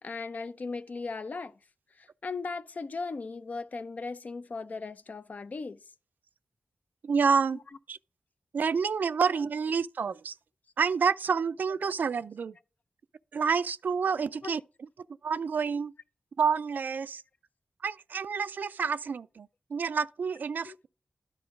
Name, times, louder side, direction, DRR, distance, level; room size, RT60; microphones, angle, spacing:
voice 1, 0.0-1.5 2.0-5.8 14.4-14.5 20.6-20.8, left 4 dB, 60° left, 0.5 m, -37 dB
voice 2, 7.0-7.6 7.9-8.0 8.5-10.3 10.8-12.6 13.3-14.6 15.2-15.9 16.4-17.2 17.8-20.9, right 5 dB, 75° right, 0.3 m, -28 dB
10.5 x 3.8 x 5.2 m
cardioid pair, 50°, 3 cm